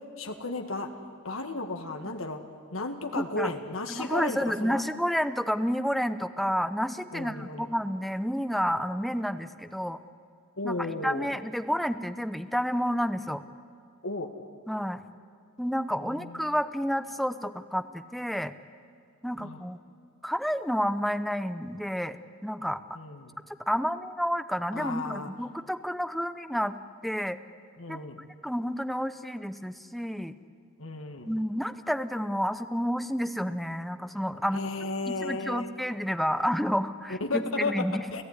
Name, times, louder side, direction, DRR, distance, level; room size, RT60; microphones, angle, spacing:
voice 1, 0.2-0.9 1.2-2.4 2.7-4.8 7.1-7.7 10.6-11.3 14.0-14.3 16.1-16.5 19.4-19.7 22.9-23.3 24.7-25.3 27.8-28.2 30.8-31.3 34.5-35.8 37.2-37.9 38.1-38.2, left 2 dB, 75° left, 5 dB, 1.9 m, -34 dB
voice 2, 3.1-3.5 3.9-10.0 10.6-13.4 14.7-15.0 15.6-18.5 19.2-19.8 20.2-22.2 22.4-22.8 23.7-26.7 27.0-27.4 27.9-28.0 28.4-30.4 31.2-34.7 35.1-38.0, equal, ahead, 11 dB, 0.8 m, -30 dB
29.5 x 15.0 x 9.9 m, 2.4 s
head